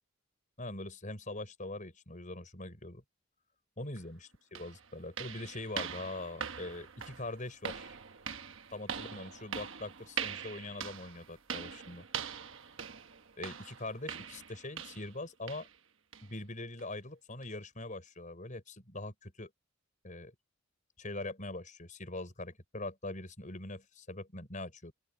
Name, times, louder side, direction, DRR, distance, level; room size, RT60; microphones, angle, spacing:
voice 1, 0.6-3.0 3.8-8.0 8.7-12.1 13.4-15.7 16.2-19.5 20.0-20.3 21.0-24.9, left 2 dB, 35° left, 5.4 m, -42 dB
sound 1, 4.0-4.1 4.5-15.2 15.5-15.8 16.1-16.3 16.8-16.9 17.4-17.5, right 7 dB, 60° right, 1.2 m, -42 dB
open air
head